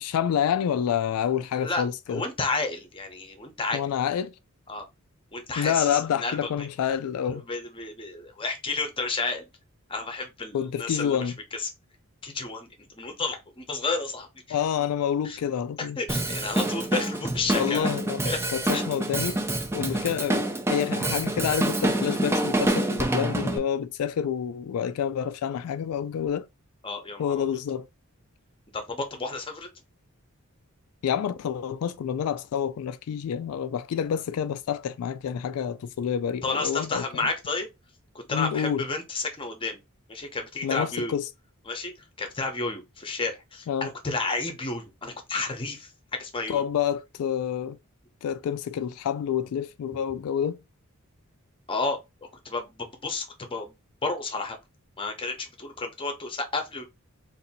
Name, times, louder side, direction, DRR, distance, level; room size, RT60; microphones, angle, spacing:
voice 1, 0.0-2.2 3.7-4.3 5.6-7.4 10.5-11.4 14.5-16.0 17.5-18.2 18.5-19.4 19.7-26.5 27.2-27.9 31.0-37.1 38.3-38.8 40.6-41.3 43.7-43.9 46.5-47.8 48.2-50.6, left 8 dB, 85° left, 0.3 m, -28 dB
voice 2, 2.1-3.8 4.7-4.8 5.3-6.5 7.3-9.5 9.9-11.7 12.2-12.7 12.9-14.6 15.2-15.4 15.8-17.9 18.2-18.4 18.7-18.8 26.8-27.5 28.7-29.7 36.4-37.7 38.1-39.8 40.1-41.1 41.7-41.9 42.2-46.6 51.7-52.0 52.4-53.7 54.0-54.6 55.0-56.8, left 3 dB, 25° left, 0.7 m, -31 dB
Drum kit, 16.1-23.6, right 1 dB, 10° right, 0.4 m, -27 dB
2.7 x 2.6 x 4.0 m
head